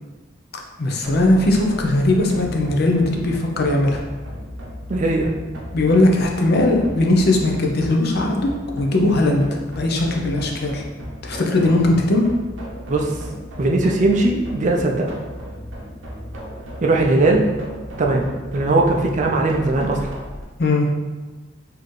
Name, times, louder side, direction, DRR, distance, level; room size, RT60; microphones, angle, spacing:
voice 1, 0.8-4.0 5.7-9.4 9.8-10.8 11.2-12.3 20.6-20.9, left 2 dB, 55° left, 1 dB, 0.6 m, -19 dB
sound 1, 1.0-20.4, equal, 80° right, 0.7 m, -35 dB
voice 2, 4.9-5.3 12.9-13.1 13.6-15.2 16.8-17.4 18.0-18.3 18.5-20.1, right 2 dB, 40° right, 1 dB, 0.4 m, -19 dB
4.2 x 2.8 x 3.2 m, 1.2 s
head